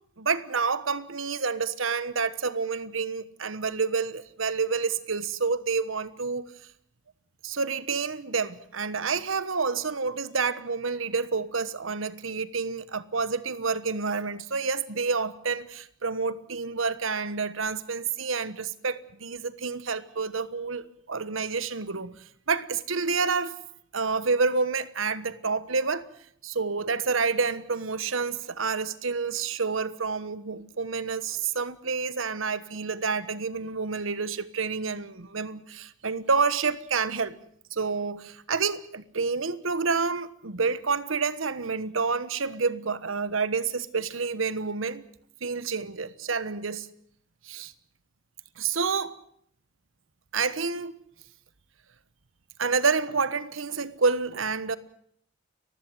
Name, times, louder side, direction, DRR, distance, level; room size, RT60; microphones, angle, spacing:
voice 1, 0.2-6.5 7.4-22.1 22.5-23.6 23.9-26.1 26.4-37.4 37.7-45.0 45.4-46.9 47.4-47.7 48.6-49.2 50.3-51.0 52.6-54.8, right 4 dB, 90° right, 1.3 m, -28 dB
30.0 x 15.5 x 7.7 m
head